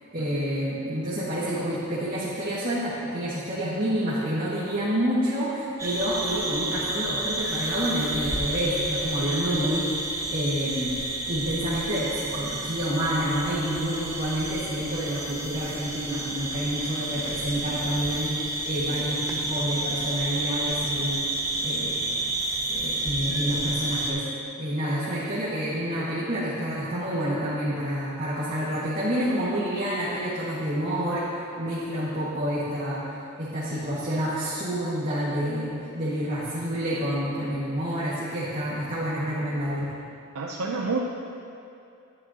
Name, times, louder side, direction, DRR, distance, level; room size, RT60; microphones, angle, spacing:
voice 1, 0.1-10.0 10.3-10.9 11.3-21.2 21.6-22.0 22.7-24.3 24.6-31.3 31.6-33.1 33.4-39.9, equal, 40° right, -10 dB, 1.8 m, -28 dB
sound 1, 5.8-24.1, right 2 dB, 15° right, 0.8 m, -30 dB
voice 2, 40.3-41.0, right 4 dB, 80° right, -2 dB, 0.7 m, -28 dB
12.0 x 9.9 x 2.9 m, 2.6 s
head